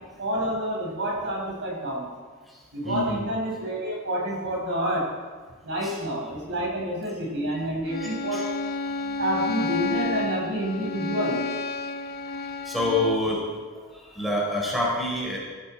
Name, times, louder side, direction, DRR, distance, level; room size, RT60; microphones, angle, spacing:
voice 1, 0.2-2.1 2.7-5.1 5.6-8.4 9.2-11.4, equal, 55° right, -2 dB, 5.9 m, -28 dB
voice 2, 2.8-3.2 5.8-5.9 7.9-8.4 9.1-9.2 12.6-13.4 14.1-15.4, left 1 dB, ahead, -4 dB, 4.6 m, -27 dB
Bowed string instrument, 7.9-13.3, left 3 dB, 45° left, 1.0 m, -31 dB
18.5 x 14.0 x 4.6 m, 1.5 s
head